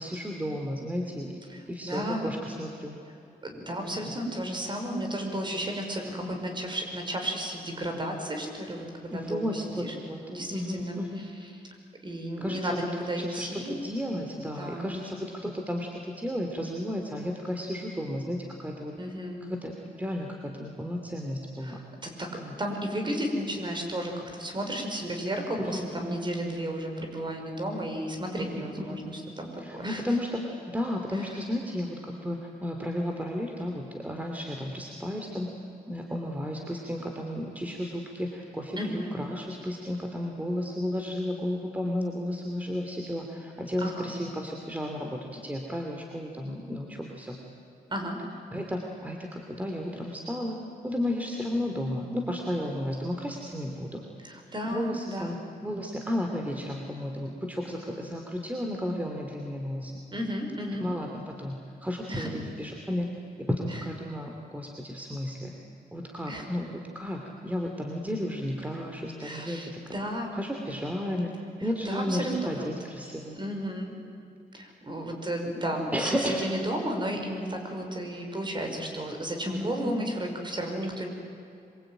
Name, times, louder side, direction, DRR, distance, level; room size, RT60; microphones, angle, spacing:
voice 1, 0.0-1.4 1.7-2.9 4.0-4.1 6.2-6.4 9.1-10.2 10.5-11.2 12.4-12.6 13.2-19.0 19.4-21.8 22.4-22.5 25.6-26.2 28.4-29.0 29.6-35.5 35.9-47.4 48.5-50.6 50.8-54.0 54.7-55.4 55.6-59.9 60.8-63.1 63.4-65.5 65.9-69.8 70.3-71.3 71.6-73.4 75.9-76.4 79.4-79.7 80.0-80.1, left 1 dB, 10° right, 2 dB, 2.8 m, -33 dB
voice 2, 1.5-2.3 3.4-9.9 10.3-11.0 12.0-13.8 14.6-14.9 19.0-19.4 21.6-22.3 22.6-30.0 31.1-31.4 38.8-39.1 43.8-44.1 47.9-48.2 54.2-55.4 60.1-60.8 62.1-62.3 63.7-63.8 66.3-66.5 69.2-70.3 71.8-72.7 73.3-73.9 74.5-81.1, right 1 dB, 30° right, 3 dB, 5.6 m, -33 dB
26.0 x 24.0 x 9.1 m, 2.7 s
cardioid pair, 100°, 16 cm